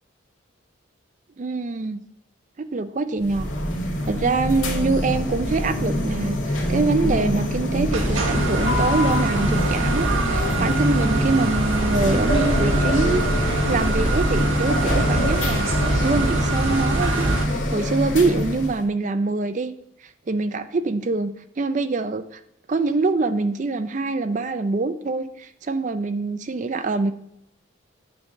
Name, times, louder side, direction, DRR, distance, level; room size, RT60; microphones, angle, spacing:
voice 1, 1.4-2.0 2.7-3.5 4.1-13.2 13.7-19.7 20.3-22.4 22.7-27.1, right 3 dB, 40° right, 10 dB, 0.4 m, -24 dB
sound 1, 3.2-18.8, left 1 dB, 85° left, 1.9 m, -24 dB
sound 2, 7.9-17.4, right 2 dB, 85° right, 1.3 m, -24 dB
9.7 x 3.2 x 6.6 m, 0.79 s
head